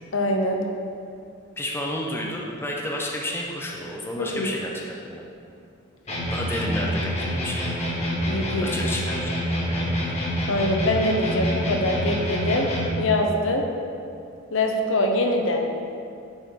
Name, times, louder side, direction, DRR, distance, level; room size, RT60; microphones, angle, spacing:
voice 1, 0.1-0.6 4.2-4.5 8.3-8.7 10.5-12.7 13.0-13.6 14.5-15.6, left 1 dB, 75° left, 3 dB, 0.7 m, -23 dB
voice 2, 1.6-5.2 6.3-7.8 8.6-9.9, left 1 dB, 10° left, -2 dB, 0.6 m, -31 dB
sound 1, 6.1-13.1, equal, 35° left, 1.4 m, -27 dB
8.8 x 4.4 x 3.7 m, 2.5 s
head